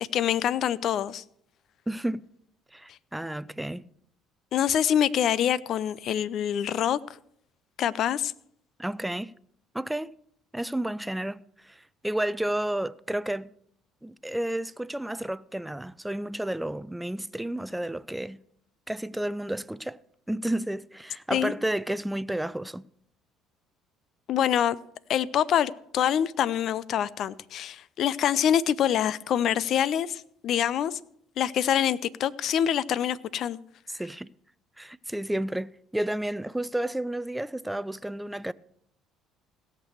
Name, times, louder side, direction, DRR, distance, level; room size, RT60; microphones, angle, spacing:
voice 1, 0.1-1.2 4.5-7.0 7.8-8.3 21.3-21.5 24.3-24.8 25.1-31.0 31.4-33.6, left 10 dB, 55° left, 0.5 m, -25 dB
voice 2, 1.9-2.2 2.7-3.9 8.8-9.3 9.7-10.1 10.5-13.5 14.0-18.4 18.9-20.0 20.3-22.9 33.9-34.3 34.8-38.5, right 1 dB, 5° right, 0.5 m, -31 dB
17.0 x 6.7 x 6.4 m
hypercardioid pair, 60°, 0 cm